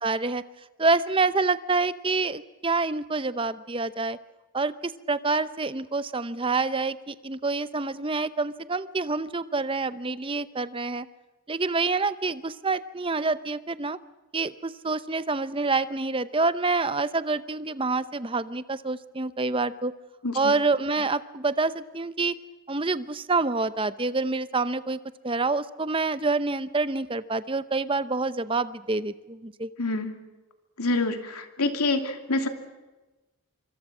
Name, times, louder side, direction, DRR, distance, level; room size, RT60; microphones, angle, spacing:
voice 1, 0.0-0.4 0.8-4.2 4.5-11.1 11.5-14.0 14.3-19.9 20.3-22.3 22.7-29.7, right 3 dB, 25° right, 14 dB, 0.7 m, -27 dB
voice 2, 20.2-20.5 29.8-30.1 30.8-32.5, left 2 dB, 85° left, 6 dB, 2.8 m, -27 dB
25.0 x 25.0 x 6.2 m, 1.1 s
head